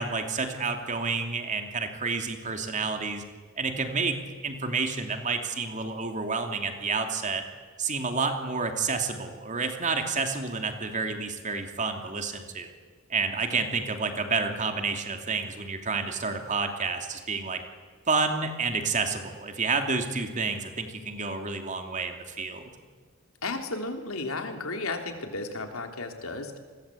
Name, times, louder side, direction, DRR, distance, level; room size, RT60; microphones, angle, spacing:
voice 1, 0.0-3.2 3.6-4.2 4.4-7.4 7.8-12.7 13.1-17.6 18.1-22.6, right 4 dB, 35° right, 5 dB, 2.8 m, -29 dB
voice 2, 23.4-26.6, left 3 dB, 80° left, 4 dB, 3.3 m, -33 dB
29.5 x 21.0 x 8.5 m, 1.5 s
head